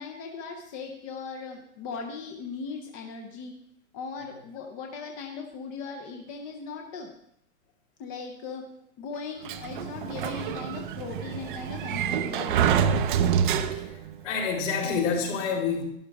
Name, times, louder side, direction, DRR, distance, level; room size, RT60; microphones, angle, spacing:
voice 1, 0.0-3.5 3.9-7.2 8.0-8.7 9.0-12.8, left 5 dB, 20° left, 2 dB, 0.6 m, -38 dB
Sliding door, 9.5-14.1, right 8 dB, 35° right, 0.5 m, -26 dB
voice 2, 14.2-15.8, left 5 dB, 55° left, 0 dB, 3.6 m, -28 dB
12.0 x 11.0 x 3.4 m, 0.74 s
hypercardioid pair, 150°, 44 cm